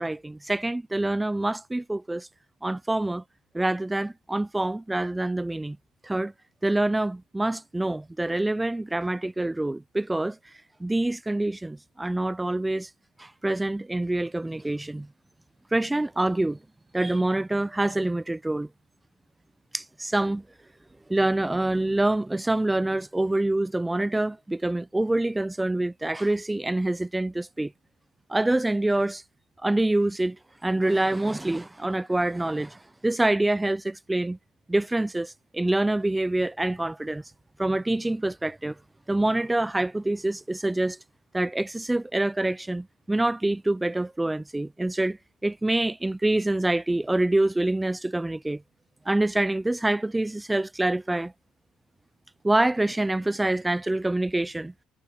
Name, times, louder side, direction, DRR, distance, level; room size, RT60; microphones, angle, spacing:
voice 1, 0.0-2.3 2.6-3.2 3.5-5.8 6.0-6.3 6.6-10.4 10.8-12.9 13.2-15.1 15.7-16.6 16.9-18.7 19.7-20.4 21.1-27.7 28.3-29.2 29.6-30.4 30.6-34.4 34.7-37.2 37.6-38.8 39.1-41.0 41.3-48.6 49.1-51.3 52.4-54.7, right 2 dB, 10° right, 0.4 m, -26 dB
supercardioid pair, 80°, 0 cm